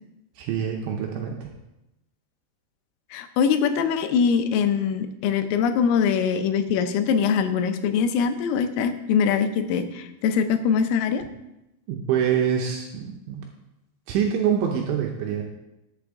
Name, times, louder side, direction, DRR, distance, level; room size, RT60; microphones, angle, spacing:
voice 1, 0.4-1.5 11.9-13.4 14.1-15.4, right 8 dB, 75° right, 1 dB, 3.0 m, -25 dB
voice 2, 3.1-11.2, left 6 dB, 85° left, 8 dB, 3.4 m, -23 dB
13.0 x 7.7 x 3.6 m, 0.93 s
omnidirectional pair, 5.8 m